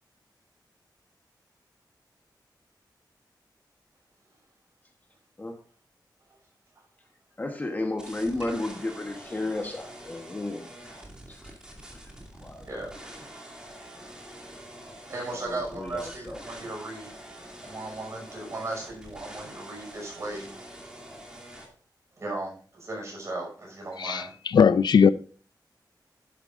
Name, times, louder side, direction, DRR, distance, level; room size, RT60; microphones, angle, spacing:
voice 1, 7.4-10.7 11.3-11.5 12.4-12.6 15.3-16.6, left 2 dB, 20° left, 1.1 m, -33 dB
sound 1, 8.0-21.7, right 1 dB, 10° right, 2.6 m, -46 dB
voice 2, 15.1-17.1 17.6-20.5 22.2-24.3, right 2 dB, 40° right, 5.8 m, -36 dB
voice 3, 24.0-25.1, left 6 dB, 70° left, 0.5 m, -19 dB
11.0 x 11.0 x 2.6 m
wide cardioid pair, 180°, 8 cm